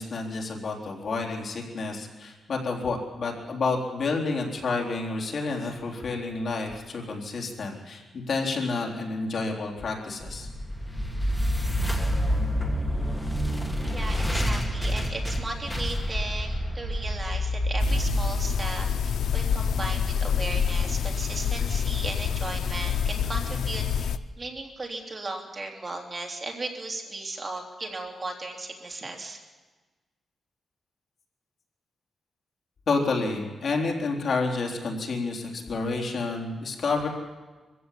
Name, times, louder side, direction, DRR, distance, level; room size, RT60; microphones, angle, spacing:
voice 1, 0.0-10.5 32.9-37.1, left 3 dB, 55° left, 0 dB, 3.9 m, -29 dB
sound 1, 10.2-19.4, equal, 10° left, 2.5 m, -28 dB
voice 2, 13.8-24.1 24.4-29.4, right 2 dB, 25° right, 1 dB, 3.2 m, -36 dB
sound 2, 17.8-24.2, left 7 dB, 85° left, 0.7 m, -27 dB
24.0 x 15.5 x 8.5 m, 1.3 s
wide cardioid pair, 125°, 0 cm